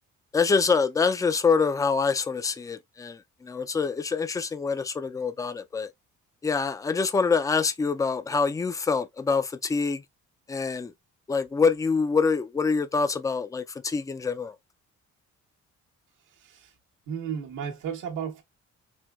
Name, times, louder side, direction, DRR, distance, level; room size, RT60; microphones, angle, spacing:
voice 1, 0.3-5.9 6.4-10.0 10.5-10.9 11.3-14.5, left 5 dB, 10° left, 0.3 m, -25 dB
voice 2, 16.4-16.7 17.1-18.4, right 7 dB, 90° right, 1.1 m, -34 dB
4.4 x 2.2 x 2.3 m
cardioid pair, 90°, 30 cm